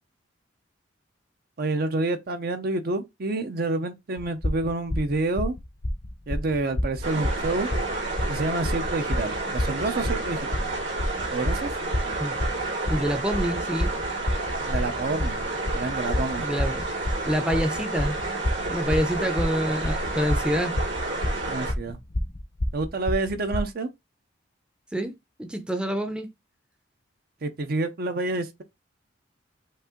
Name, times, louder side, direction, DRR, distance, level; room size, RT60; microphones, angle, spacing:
voice 1, 1.6-5.5 6.3-7.7 8.3-10.4 11.3-11.7 14.7-15.4 15.7-16.5 21.5-22.0 22.7-23.9 27.4-28.6, right 2 dB, 55° right, 0.6 m, -28 dB
sound 1, 4.2-23.6, left 1 dB, 40° left, 0.7 m, -29 dB
sound 2, 7.0-21.7, right 2 dB, 85° right, 2.5 m, -30 dB
voice 2, 12.9-14.0 16.4-16.8 17.3-18.2 18.7-20.7 24.9-25.1 25.4-26.3, equal, 5° right, 0.6 m, -27 dB
5.4 x 2.5 x 3.7 m
head